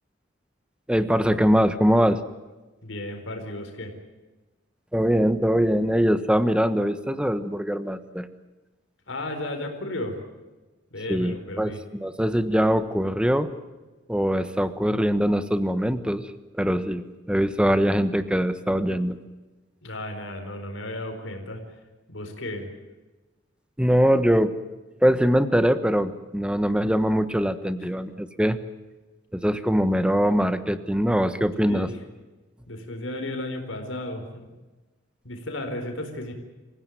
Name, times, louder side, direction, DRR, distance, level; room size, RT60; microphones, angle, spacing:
voice 1, 0.9-2.2 4.9-8.3 11.1-13.5 14.1-16.3 16.6-19.2 23.8-24.5 25.0-28.6 29.3-31.9, equal, 5° right, 11 dB, 1.2 m, -22 dB
voice 2, 2.8-4.0 9.1-10.2 10.9-11.8 19.8-21.6 22.1-22.7 27.8-27.9 31.6-32.0 32.7-34.5 35.2-36.3, left 1 dB, 85° left, 5 dB, 4.4 m, -34 dB
27.0 x 16.5 x 9.4 m, 1.2 s
head